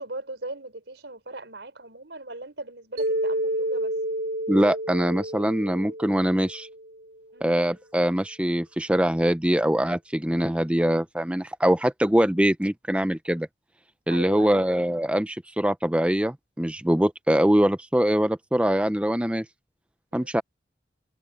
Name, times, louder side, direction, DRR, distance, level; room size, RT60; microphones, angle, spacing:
voice 1, 0.0-3.9 7.3-7.6 14.1-14.7 20.1-20.4, right 2 dB, 90° right, 5.1 m, -39 dB
Mallet percussion, 3.0-7.1, right 1 dB, 70° right, 4.0 m, -30 dB
voice 2, 4.5-6.7 7.4-13.5 14.1-19.4 20.1-20.4, equal, 5° right, 0.6 m, -23 dB
head